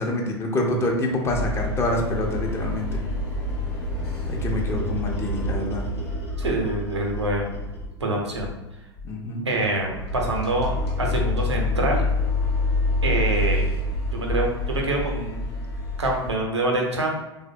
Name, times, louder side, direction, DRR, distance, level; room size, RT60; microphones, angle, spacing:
voice 1, 0.0-3.0 4.3-5.9 9.0-9.4, left 1 dB, 20° left, 0 dB, 0.5 m, -26 dB
sound 1, 1.3-8.0 8.3-8.6 9.0-9.1 9.5-16.3, left 2 dB, 70° left, 0.9 m, -27 dB
voice 2, 6.4-7.6 8.0-8.5 9.4-12.0 13.0-13.6 14.1-15.5 16.0-17.1, right 2 dB, 80° right, 0 dB, 0.6 m, -25 dB
3.1 x 2.0 x 2.6 m, 1.0 s
figure-of-eight pair, 85°, 14 cm